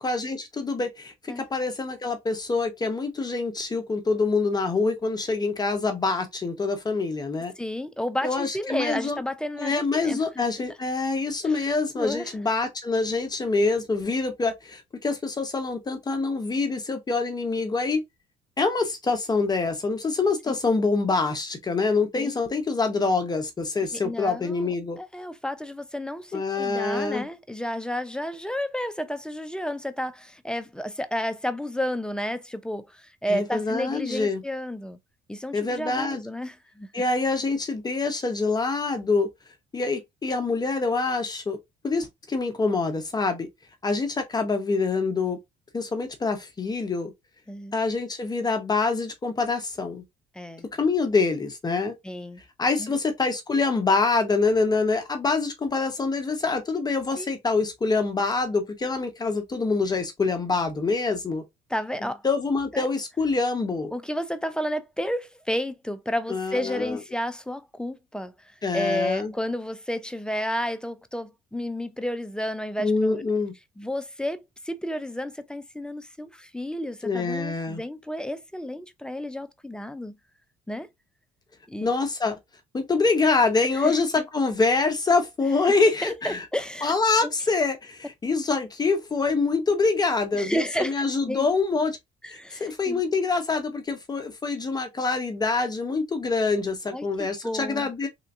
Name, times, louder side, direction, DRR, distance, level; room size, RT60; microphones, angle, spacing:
voice 1, 0.0-7.5 8.2-9.2 9.6-18.0 18.6-25.0 26.3-27.3 33.3-34.4 35.5-36.2 36.9-39.3 39.7-41.6 41.8-43.5 43.8-45.4 45.7-47.1 47.7-50.0 50.8-51.9 52.6-61.4 62.2-63.9 66.3-67.0 68.6-69.3 72.8-73.5 77.0-77.8 81.8-82.4 82.7-86.4 86.8-92.0 92.3-98.1, left 3 dB, 25° left, 0.7 m, -25 dB
voice 2, 7.6-10.2 11.4-11.7 11.9-12.3 20.5-20.6 22.2-22.4 23.9-35.0 35.3-36.9 47.5-47.7 50.3-50.7 52.0-52.4 52.8-52.9 57.2-57.3 61.7-62.2 62.7-62.9 63.9-73.2 73.8-80.2 80.7-80.9 81.7-81.9 83.8-84.3 86.0-86.9 87.2-87.3 90.4-91.5 92.2-93.0 96.9-97.9, equal, 5° left, 0.4 m, -31 dB
3.3 x 2.8 x 2.6 m
cardioid pair, 110°, 17 cm